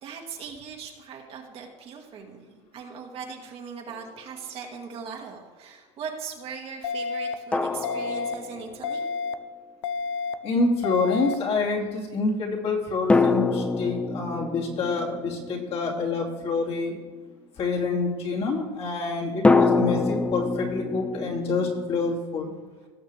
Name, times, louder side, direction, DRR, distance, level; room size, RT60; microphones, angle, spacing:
voice 1, 0.0-2.5 2.7-9.1, right 6 dB, 40° right, 1 dB, 2.0 m, -39 dB
sound 1, 3.9-4.0 7.5-9.0 13.1-16.7 19.4-22.2, left 3 dB, 10° left, 0.4 m, -25 dB
sound 2, 6.8-7.3 7.8-8.3 8.8-9.3 9.8-10.3 10.8-11.3, left 5 dB, 90° left, 0.6 m, -29 dB
voice 2, 10.4-16.9 17.6-22.5, left 3 dB, 40° left, -2 dB, 2.7 m, -27 dB
18.0 x 6.6 x 3.5 m, 1.4 s
supercardioid pair, 120°, 15 cm